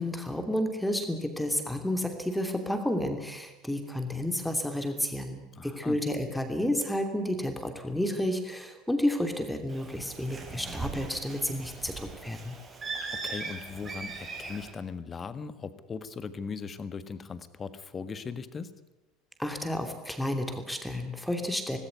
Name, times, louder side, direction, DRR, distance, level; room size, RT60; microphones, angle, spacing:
voice 1, 0.0-12.5 19.4-21.8, left 1 dB, 5° left, 6 dB, 2.9 m, -31 dB
voice 2, 5.5-6.0 13.1-18.7, left 5 dB, 25° left, 14 dB, 1.6 m, -39 dB
Bird, 9.7-14.7, right 4 dB, 25° right, 5.8 m, -39 dB
19.0 x 17.5 x 9.5 m, 1.0 s
figure-of-eight pair, 65°, 0 cm